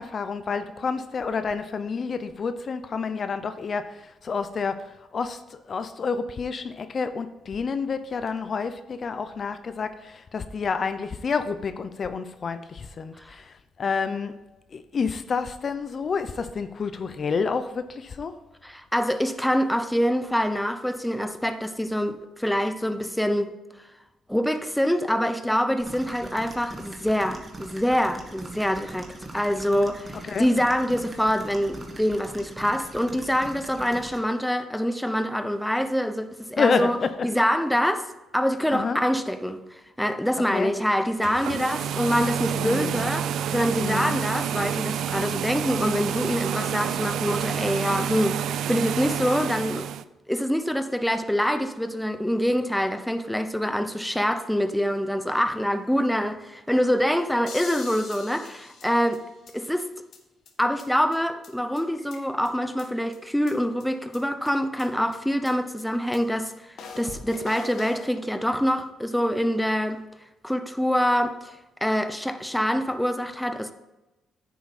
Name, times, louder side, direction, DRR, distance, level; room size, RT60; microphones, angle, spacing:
voice 1, 0.0-14.3 14.7-18.4 30.3-30.5 36.6-37.1 38.7-39.0 40.5-40.7 42.5-43.0 43.8-44.2, left 5 dB, 45° left, 0.6 m, -29 dB
voice 2, 18.6-23.5 24.3-37.0 37.2-38.1 38.3-49.9 50.3-59.2 59.5-59.9 60.6-70.0 70.4-73.7, equal, 5° left, 0.8 m, -25 dB
sound 1, 25.8-34.2, right 2 dB, 25° right, 1.7 m, -42 dB
sound 2, 41.1-50.0, right 9 dB, 75° right, 0.4 m, -29 dB
sound 3, 57.5-59.5 59.8-59.9 60.1-60.2 60.5-60.6 60.8-60.9 61.1-61.2 61.4-61.5 61.8-62.5 62.8-62.9 63.1-63.2 63.5-63.6 63.8-63.9 64.1-64.2 64.5-64.6 64.8-64.9 65.1-65.2 65.4-65.5 65.8-65.9 66.1-66.2 66.5-66.6 66.8-68.1, left 5 dB, 65° left, 1.6 m, -42 dB
9.5 x 7.0 x 4.2 m
cardioid pair, 90°, 0 cm